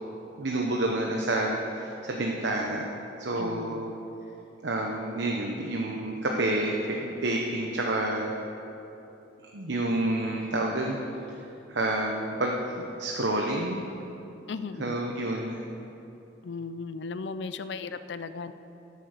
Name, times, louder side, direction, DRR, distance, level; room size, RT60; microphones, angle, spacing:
voice 1, 0.4-2.9 3.2-3.9 4.6-8.3 9.5-11.0 11.7-13.8 14.8-15.6, right 1 dB, 75° right, 0 dB, 0.9 m, -29 dB
voice 2, 3.4-3.9 14.5-15.0 16.4-18.5, left 4 dB, 70° left, 12 dB, 0.4 m, -36 dB
13.0 x 8.3 x 6.7 m, 2.9 s
head